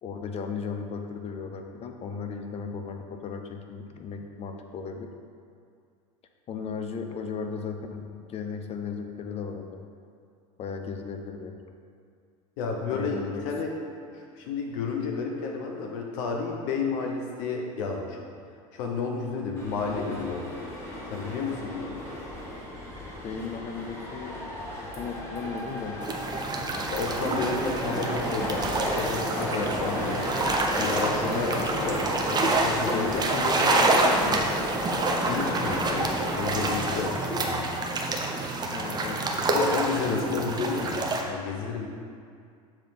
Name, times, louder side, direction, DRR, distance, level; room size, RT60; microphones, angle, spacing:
voice 1, 0.0-5.1 6.5-9.9 10.6-11.6 12.9-13.5 23.2-24.4 25.0-26.0 31.5-31.6 32.9-34.5 38.7-39.7 40.1-40.3, left 5 dB, 35° left, 5 dB, 0.8 m, -35 dB
voice 2, 12.6-13.7 14.1-18.3 18.7-20.6 21.1-21.9 26.9-30.2 30.8-33.2 35.3-37.6 39.5-41.0 41.3-41.9, left 4 dB, 60° left, 1 dB, 0.9 m, -31 dB
sound 1, 19.5-37.0, equal, 15° left, 1.6 m, -33 dB
sound 2, 26.0-41.2, right 2 dB, 25° right, 0.8 m, -28 dB
7.3 x 3.5 x 5.9 m, 2.3 s
hypercardioid pair, 100°, 18 cm